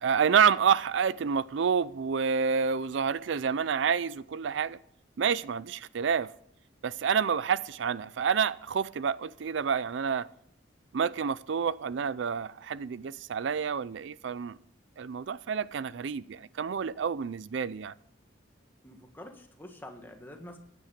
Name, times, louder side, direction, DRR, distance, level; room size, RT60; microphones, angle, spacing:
voice 1, 0.0-4.8 5.2-6.3 6.8-10.3 10.9-14.6 15.0-17.9, right 6 dB, 70° right, 0.4 m, -28 dB
voice 2, 18.8-20.6, left 1 dB, 10° left, 1.7 m, -46 dB
14.5 x 10.5 x 5.0 m
head